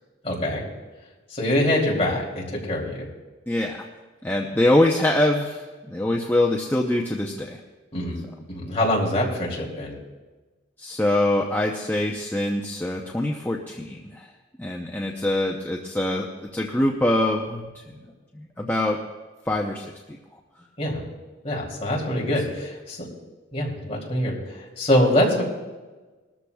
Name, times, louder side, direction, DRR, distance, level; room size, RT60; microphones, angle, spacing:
voice 1, 0.2-0.6 1.3-3.1 7.9-8.2 8.5-9.9 20.8-21.0 21.4-23.1 23.5-25.4, left 1 dB, 30° left, -2 dB, 3.0 m, -24 dB
voice 2, 3.5-3.8 4.2-7.6 10.8-14.3 14.6-16.3 16.5-17.8 18.3-19.0 19.5-19.8, left 1 dB, 10° left, 0 dB, 0.7 m, -24 dB
20.5 x 13.5 x 2.3 m, 1.3 s
head